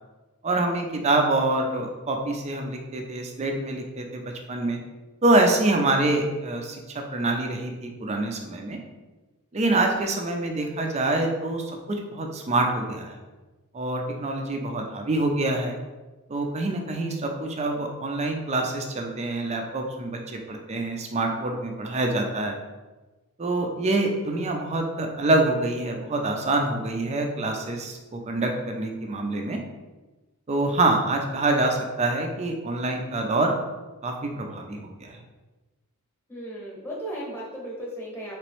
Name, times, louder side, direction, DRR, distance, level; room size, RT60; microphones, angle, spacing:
voice 1, 0.4-4.8 5.2-8.8 9.5-13.2 13.7-15.8 16.3-22.6 23.4-29.6 30.5-33.5 34.0-35.2, right 2 dB, 30° right, 2 dB, 0.4 m, -26 dB
voice 2, 36.3-38.4, right 1 dB, 10° left, -4 dB, 1.0 m, -35 dB
3.3 x 3.0 x 3.1 m, 1.2 s
head